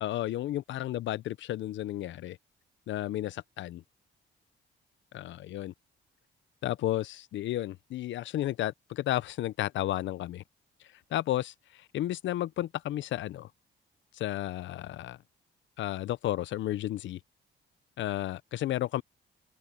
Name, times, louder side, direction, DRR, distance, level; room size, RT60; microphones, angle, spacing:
voice 1, 0.0-2.4 2.9-3.8 5.1-5.7 6.6-10.4 11.1-13.5 14.1-15.2 15.8-17.2 18.0-19.0, left 14 dB, 70° left, 0.6 m, -32 dB
cardioid pair, 90°, 20 cm